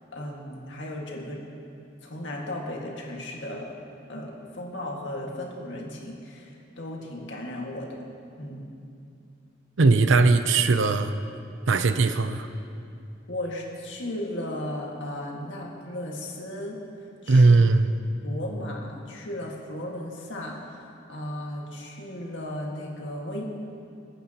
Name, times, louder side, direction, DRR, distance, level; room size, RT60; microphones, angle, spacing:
voice 1, 0.1-1.4 2.0-3.8 4.1-8.1 8.4-8.7 11.7-12.0 13.3-16.8 17.2-17.6 18.2-23.4, left 1 dB, 75° left, -1 dB, 1.9 m, -35 dB
voice 2, 9.8-11.1 11.7-12.5 17.3-17.9, right 3 dB, 80° right, 10 dB, 0.6 m, -19 dB
25.0 x 9.0 x 3.0 m, 2.5 s
head